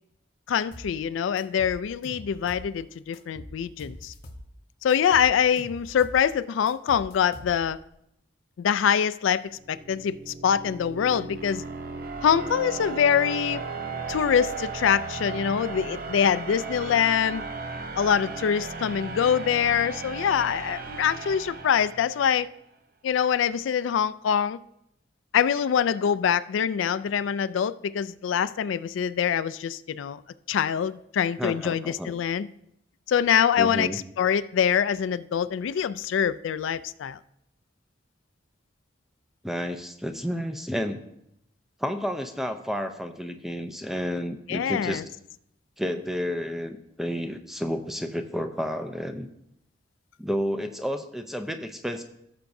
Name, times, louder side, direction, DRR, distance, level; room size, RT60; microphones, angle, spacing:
voice 1, 0.5-4.1 4.8-7.8 8.6-9.4 9.7-11.6 12.2-13.6 14.1-17.4 18.0-22.5 23.0-24.6 25.3-30.2 30.5-32.5 33.1-37.2 44.5-45.0, left 8 dB, 80° left, 0.3 m, -24 dB
sound 1, 0.7-1.0 1.4-2.7 3.1-4.5 4.9-6.3 6.7-7.8, left 1 dB, 45° left, 0.9 m, -44 dB
sound 2, 9.5-22.4, right 4 dB, 45° right, 0.7 m, -36 dB
voice 2, 31.4-32.1 33.6-34.0 39.4-41.0 41.8-45.0 45.8-49.3 50.2-52.0, equal, ahead, 0.5 m, -31 dB
16.0 x 6.9 x 2.6 m
head